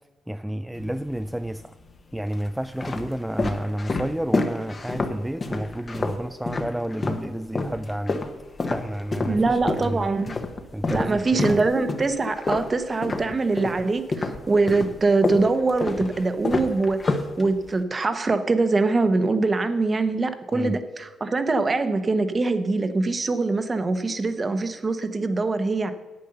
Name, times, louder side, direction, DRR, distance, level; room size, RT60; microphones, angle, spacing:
voice 1, 0.3-1.8 2.1-8.2 8.7-10.1 10.7-11.6 20.5-20.8, right 1 dB, 5° right, 0.3 m, -30 dB
sound 1, 0.7-1.5 2.2-7.3 7.5-13.8 14.1-17.8, left 3 dB, 30° left, 1.1 m, -28 dB
voice 2, 9.3-10.3 10.9-25.9, right 3 dB, 30° right, 1.0 m, -23 dB
9.5 x 8.4 x 6.7 m
cardioid pair, 90°, 0 cm